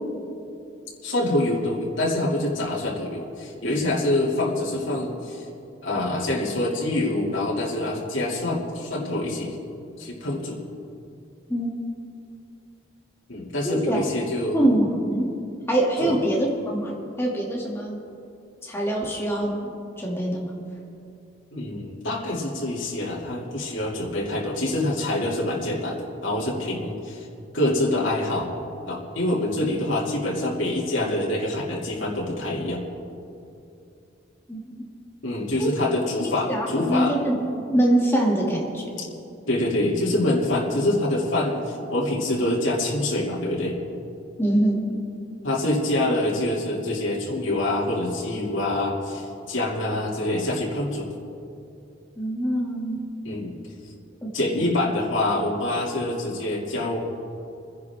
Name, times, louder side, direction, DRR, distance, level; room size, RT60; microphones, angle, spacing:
voice 1, 1.0-5.4 5.8-9.6 10.0-10.6 13.3-14.8 16.0-16.2 21.5-27.3 27.5-28.5 28.8-32.8 35.2-37.2 39.5-43.8 45.4-51.1 53.2-53.5 54.3-57.0, left 1 dB, 80° left, -4 dB, 2.6 m, -25 dB
voice 2, 13.6-14.0 14.5-15.4 15.7-18.0 18.6-19.7 20.0-20.6 34.5-34.9 35.6-35.7 36.5-37.4 37.7-38.9 44.4-45.0 52.2-53.0 54.2-54.3 54.6-54.7, right 1 dB, 15° left, -3 dB, 2.4 m, -24 dB
29.0 x 10.5 x 3.6 m, 2.7 s
head